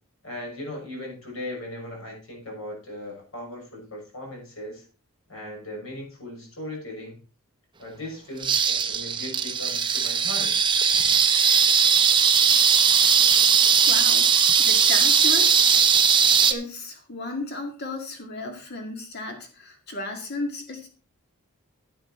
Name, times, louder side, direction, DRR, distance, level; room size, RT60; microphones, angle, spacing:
voice 1, 0.2-4.8 5.3-7.2 7.8-10.5, left 1 dB, 65° left, 0 dB, 6.5 m, -38 dB
sound 1, 8.4-16.5, right 7 dB, 20° right, 0.8 m, -19 dB
voice 2, 13.9-15.5 16.5-20.9, left 2 dB, 45° left, 3 dB, 2.0 m, -34 dB
10.5 x 9.1 x 4.3 m, 0.37 s
head